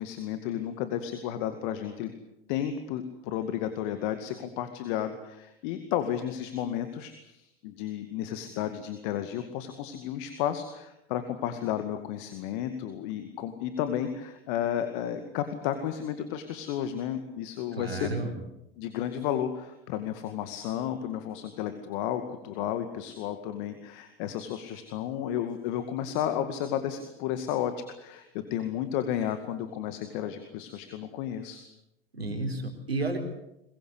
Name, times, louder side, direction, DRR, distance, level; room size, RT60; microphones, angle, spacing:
voice 1, 0.0-2.1 2.5-18.1 18.8-27.7 28.0-31.6, left 10 dB, 55° left, 9 dB, 2.2 m, -32 dB
voice 2, 17.8-18.3 32.1-33.2, right 2 dB, 90° right, 4 dB, 4.2 m, -31 dB
22.5 x 22.0 x 8.2 m, 0.85 s
figure-of-eight pair, 85°, 30 cm